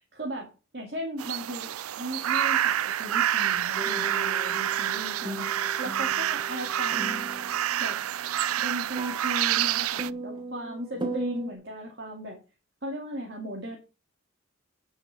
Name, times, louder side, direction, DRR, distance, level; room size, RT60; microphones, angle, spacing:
voice 1, 0.2-7.2 7.8-8.0 8.6-12.4 12.8-13.8, equal, 50° right, 0 dB, 2.4 m, -37 dB
sound 1, 1.2-10.1, right 11 dB, 85° right, 0.4 m, -28 dB
sound 2, 3.8-11.5, right 1 dB, 20° right, 1.2 m, -39 dB
9.4 x 6.5 x 5.8 m, 0.31 s
head